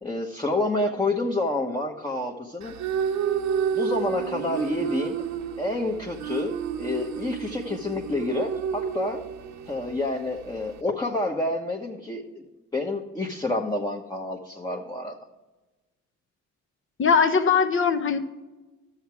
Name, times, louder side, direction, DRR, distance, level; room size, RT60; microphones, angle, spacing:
voice 1, 0.0-2.7 3.7-5.2 5.6-9.2 9.7-12.2 12.7-15.2, left 2 dB, 15° left, 0 dB, 1.1 m, -28 dB
sound 1, 2.6-10.8, right 8 dB, 70° right, 1.0 m, -31 dB
voice 2, 17.0-18.2, left 6 dB, 45° left, 9 dB, 1.0 m, -20 dB
11.5 x 7.3 x 4.7 m, 1.1 s
cardioid pair, 90°, 30 cm